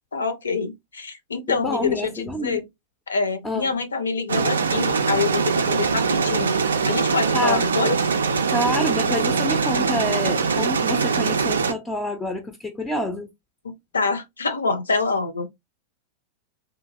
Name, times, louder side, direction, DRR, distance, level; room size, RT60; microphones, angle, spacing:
voice 1, 0.1-2.6 3.1-6.6 6.8-8.0 13.6-15.5, left 4 dB, 75° left, 0.5 m, -26 dB
voice 2, 1.5-2.6 3.4-3.7 7.3-7.6 8.5-13.3, left 1 dB, 10° left, 0.4 m, -27 dB
sound 1, 4.3-11.7, right 5 dB, 70° right, 0.3 m, -22 dB
2.8 x 2.5 x 2.5 m
figure-of-eight pair, 90°, 0 cm